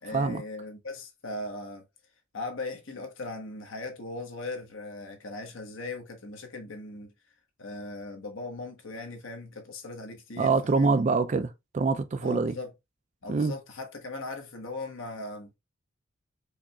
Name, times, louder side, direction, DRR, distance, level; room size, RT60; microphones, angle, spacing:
voice 1, 0.0-1.8 2.3-7.1 7.6-11.0 12.2-12.7 13.2-15.5, left 2 dB, 70° left, 1.0 m, -39 dB
voice 2, 10.4-12.6 13.3-13.5, right 4 dB, 35° right, 0.3 m, -25 dB
4.8 x 2.8 x 2.3 m
head